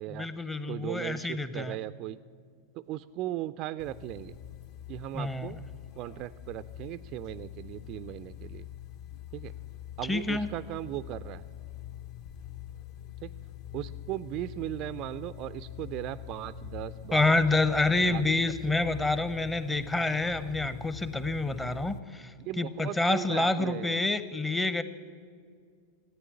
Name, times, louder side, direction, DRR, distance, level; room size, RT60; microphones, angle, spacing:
voice 1, 0.1-1.8 5.1-5.6 10.0-10.5 17.1-24.8, left 2 dB, 10° left, 13 dB, 0.7 m, -28 dB
voice 2, 0.7-2.2 2.9-4.4 4.9-5.6 6.0-8.6 9.3-9.5 10.0-11.4 13.2-13.3 13.7-17.4 18.1-18.2 22.5-24.0, right 14 dB, 40° right, 14 dB, 0.4 m, -37 dB
sound 1, 3.8-22.0, left 11 dB, 45° left, 0.8 m, -44 dB
14.5 x 9.1 x 9.8 m, 2.1 s
figure-of-eight pair, 90°, 0 cm